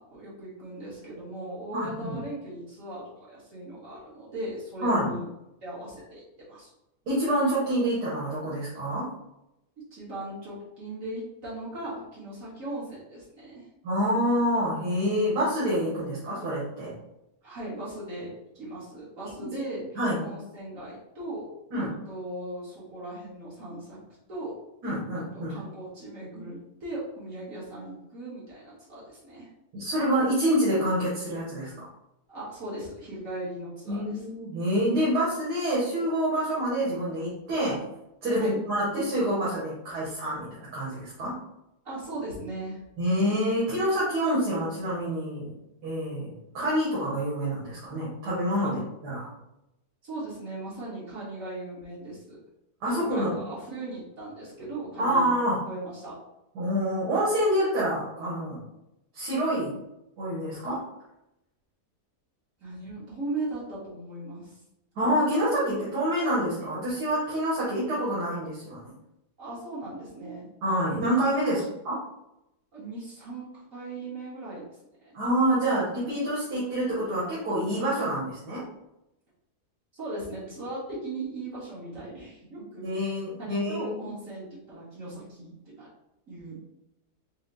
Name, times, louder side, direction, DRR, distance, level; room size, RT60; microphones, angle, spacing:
voice 1, 0.0-3.0 3.3-5.3 5.6-6.2 6.5-6.7 9.9-13.7 17.4-19.8 20.2-24.0 24.3-24.5 25.1-29.5 32.3-34.2 38.3-38.6 41.8-42.8 48.6-48.7 50.0-52.4 52.9-55.3 55.7-56.2 62.6-64.6 69.4-70.4 71.5-71.6 72.7-75.1 79.9-83.0 83.4-85.9 86.3-86.6, right 2 dB, 55° right, -8 dB, 1.7 m, -38 dB
voice 2, 1.7-2.2 4.8-5.1 7.1-9.1 13.8-16.9 19.4-19.5 19.9-20.2 21.7-22.0 24.8-25.6 29.7-31.9 33.9-37.8 38.2-41.4 43.0-45.5 45.8-49.3 52.8-53.4 55.0-55.6 56.5-58.6 59.1-59.8 60.2-60.8 64.9-68.9 70.6-72.0 75.1-78.7 82.8-84.1, equal, 80° right, -8 dB, 1.7 m, -27 dB
4.9 x 2.0 x 3.9 m, 0.89 s
omnidirectional pair, 1.7 m